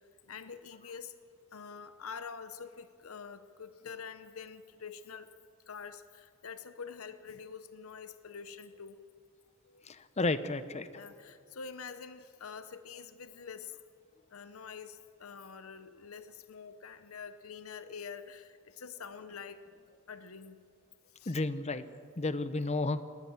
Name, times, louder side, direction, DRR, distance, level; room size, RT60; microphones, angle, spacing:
voice 1, 0.2-1.1 1.5-5.3 5.7-9.0 9.6-9.8 10.9-13.8 14.3-19.6 20.1-20.6 21.0-21.4, left 6 dB, 80° left, 12 dB, 0.8 m, -46 dB
voice 2, 9.9-11.0 21.3-21.8 22.2-23.0, left 2 dB, 30° left, 13 dB, 0.8 m, -32 dB
19.5 x 18.5 x 7.2 m, 2.3 s
head